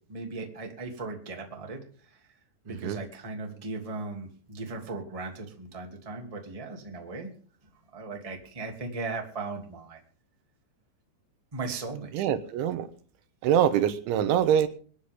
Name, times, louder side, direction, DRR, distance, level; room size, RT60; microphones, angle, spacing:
voice 1, 0.1-1.8 2.1-2.2 2.6-7.3 7.9-10.0 11.5-12.3, right 3 dB, 10° right, 2 dB, 1.8 m, -37 dB
voice 2, 2.7-3.0 12.1-12.9 13.4-14.7, right 9 dB, 85° right, 11 dB, 3.5 m, -24 dB
24.5 x 10.5 x 3.7 m, 0.44 s
omnidirectional pair, 5.3 m